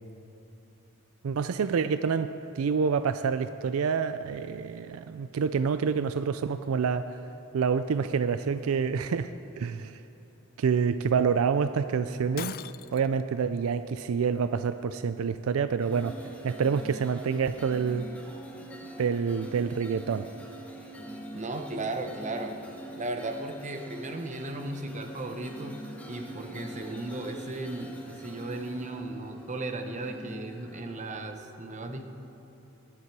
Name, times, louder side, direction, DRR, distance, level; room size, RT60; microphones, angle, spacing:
voice 1, 1.2-2.3 2.6-7.2 7.5-9.3 9.6-10.0 10.6-12.6 12.9-16.1 16.4-18.1 19.0-20.2, right 6 dB, 75° right, 11 dB, 0.4 m, -27 dB
Shatter, 12.4-13.2, left 11 dB, 45° left, 0.3 m, -40 dB
sound 1, 15.8-31.2, right 1 dB, 10° left, 1.8 m, -44 dB
voice 2, 21.3-22.6 23.0-25.8 26.1-32.1, right 2 dB, 35° right, 6 dB, 1.0 m, -36 dB
19.0 x 11.0 x 4.7 m, 3.0 s
head